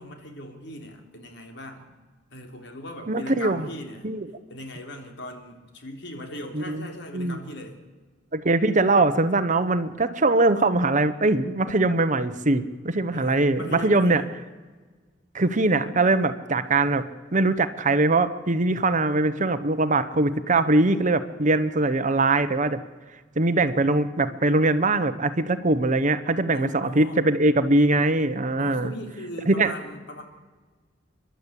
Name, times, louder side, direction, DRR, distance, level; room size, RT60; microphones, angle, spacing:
voice 1, 0.0-1.9 2.3-4.1 4.5-7.8 13.1-14.3 26.5-27.2 28.6-30.2, left 1 dB, 65° left, 4 dB, 3.5 m, -39 dB
voice 2, 3.1-3.7 4.0-4.3 6.5-6.9 7.1-7.4 8.3-14.2 15.3-17.0 17.3-22.8 23.4-28.9 29.5-29.7, right 2 dB, 40° right, 12 dB, 1.0 m, -22 dB
30.0 x 11.5 x 8.3 m, 1.4 s
head